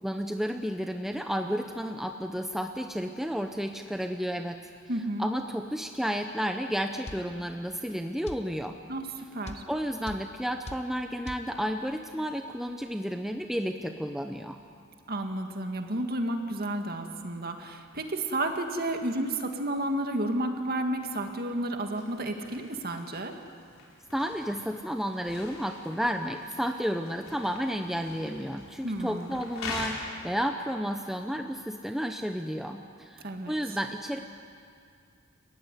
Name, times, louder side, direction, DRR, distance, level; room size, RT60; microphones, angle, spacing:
voice 1, 0.0-4.6 5.2-8.8 9.7-14.6 24.1-34.2, equal, ahead, 5 dB, 0.7 m, -32 dB
voice 2, 4.9-5.3 8.9-9.6 15.1-23.3 28.8-29.4 33.2-33.5, right 1 dB, 45° right, 5 dB, 2.1 m, -31 dB
sound 1, 7.1-7.3 8.3-8.5 9.5-9.7 10.1-10.3 10.7-10.9 11.3-11.5, left 1 dB, 30° left, 0.9 m, -40 dB
sound 2, 21.9-29.9, left 4 dB, 75° left, 3.9 m, -44 dB
29.0 x 15.5 x 9.8 m, 2.3 s
head